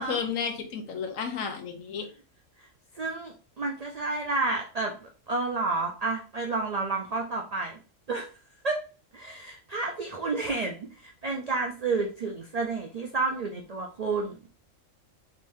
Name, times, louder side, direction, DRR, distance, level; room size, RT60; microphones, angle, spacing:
voice 1, 0.0-2.1, left 6 dB, 80° left, 5 dB, 1.1 m, -32 dB
voice 2, 2.9-7.8 8.1-8.3 8.6-8.8 9.1-14.5, right 3 dB, 70° right, 2 dB, 0.3 m, -30 dB
3.6 x 3.1 x 2.6 m, 0.36 s
omnidirectional pair, 1.4 m